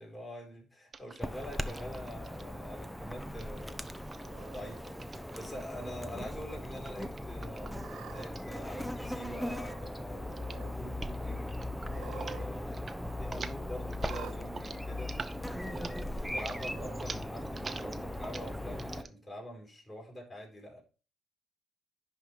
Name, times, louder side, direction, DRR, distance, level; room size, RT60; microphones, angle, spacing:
voice 1, 0.0-11.4 11.8-15.1 15.6-20.8, equal, 20° left, 4.3 m, -45 dB
sound 1, 0.9-2.4 3.3-5.8 6.7-9.2 9.5-9.9 10.3-10.7 10.9-11.2 11.5-12.4 12.6-13.0 13.2-19.1, right 4 dB, 35° right, 0.7 m, -46 dB
Chirp tweet / Buzz, 1.2-19.0, left 1 dB, ahead, 0.7 m, -39 dB
Cat, 4.2-4.8 5.5-6.0 6.4-6.5 7.5-8.3 9.3-9.9 10.2-10.8 11.8-12.5 12.8-12.9 14.0-14.4 15.3-15.4 16.5-17.1, right 10 dB, 85° right, 0.7 m, -49 dB
10.5 x 3.7 x 4.6 m
cardioid pair, 90°, 0 cm